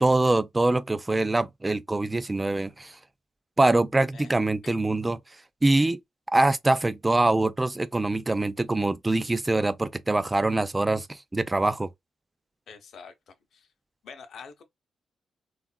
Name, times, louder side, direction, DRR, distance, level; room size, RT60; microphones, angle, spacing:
voice 1, 0.0-3.0 3.6-5.2 5.6-6.0 6.3-11.9, right 2 dB, 15° right, 0.3 m, -24 dB
voice 2, 12.7-13.7 14.0-14.6, left 6 dB, 70° left, 0.7 m, -46 dB
3.5 x 2.4 x 2.2 m
cardioid pair, 110°, 0 cm